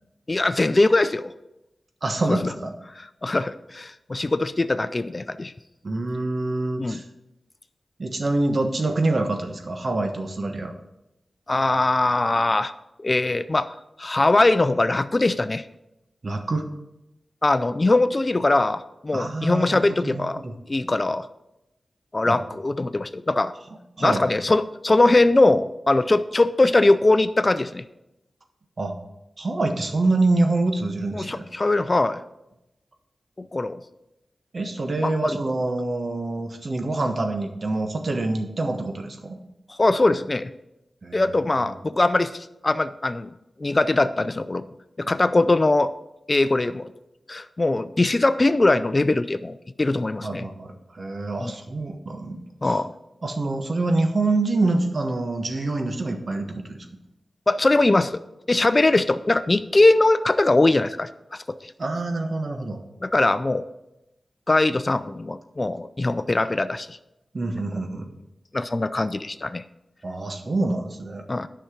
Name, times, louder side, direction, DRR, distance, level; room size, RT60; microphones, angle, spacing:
voice 1, 0.3-1.3 2.3-2.5 3.0-5.5 6.8-7.0 11.5-12.7 13.0-13.7 14.0-15.6 17.4-20.4 20.7-21.3 22.1-23.5 24.0-27.8 31.1-32.2 33.4-33.8 35.0-35.4 39.7-40.5 41.1-43.3 43.6-44.7 45.0-45.9 46.3-46.9 47.3-50.5 51.4-51.5 52.6-52.9 57.5-58.2 58.5-61.7 63.0-63.7 64.5-67.0 68.5-69.6 71.3-71.5, left 2 dB, 35° left, 13 dB, 0.4 m, -21 dB
voice 2, 2.0-2.7 5.8-7.0 8.0-10.7 16.2-16.7 19.1-20.5 22.2-22.4 24.0-24.2 28.8-28.9 29.4-31.5 34.5-39.4 41.0-41.3 41.6-41.7 50.2-52.8 53.2-56.8 61.8-62.8 67.3-68.1 70.0-71.2, right 2 dB, 55° right, 5 dB, 1.3 m, -26 dB
9.9 x 5.8 x 5.9 m, 0.90 s
cardioid pair, 60°, 0 cm